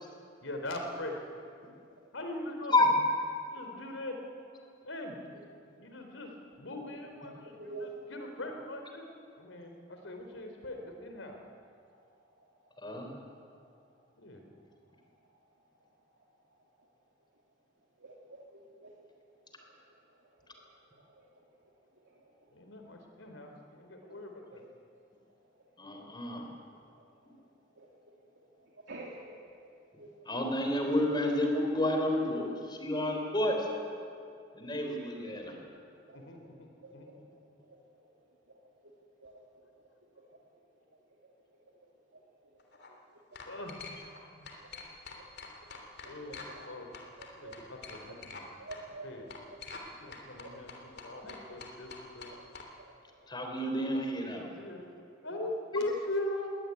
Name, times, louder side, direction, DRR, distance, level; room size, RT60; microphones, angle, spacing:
voice 1, 0.4-1.1 2.1-2.8 3.5-4.2 4.8-5.1 5.8-6.3 6.6-9.1 9.4-11.4 14.2-14.4 22.5-24.6 36.1-36.7 36.9-37.1 43.5-43.8 46.0-46.9 47.4-48.4 49.0-49.3 50.0-52.3 54.6-54.8 55.2-56.5, left 1 dB, 85° left, 3 dB, 3.9 m, -40 dB
voice 2, 7.3-7.9 18.0-18.4 18.8-18.9 24.5-24.6 27.8-27.9 28.9-29.2 30.0-30.1 36.1-36.2 39.2-39.3 47.2-47.5 48.6-49.1 51.2-51.4, right 3 dB, 75° right, -3 dB, 3.0 m, -45 dB
voice 3, 25.8-26.5 30.3-33.6 34.6-35.5 53.3-54.5, left 1 dB, 25° left, 3 dB, 3.8 m, -30 dB
sound 1, 42.6-42.9 43.3-44.2 44.4-46.7 46.9-48.4 48.7-48.8 49.3-49.9 50.1-52.7, left 4 dB, 60° left, 3.2 m, -46 dB
21.0 x 18.0 x 9.7 m, 2.4 s
head